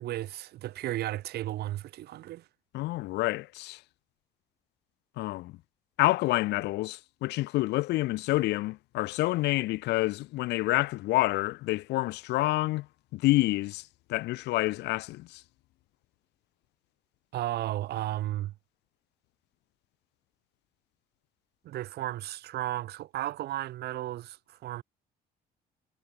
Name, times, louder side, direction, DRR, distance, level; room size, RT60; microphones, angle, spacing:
voice 1, 0.0-2.4 17.3-18.5 21.6-24.8, right 14 dB, 70° right, 7.9 m, -34 dB
voice 2, 2.7-3.8 5.2-5.5 6.0-12.9 13.1-13.8 14.1-15.4, left 19 dB, 85° left, 4.1 m, -28 dB
cardioid pair, 110°, 17 cm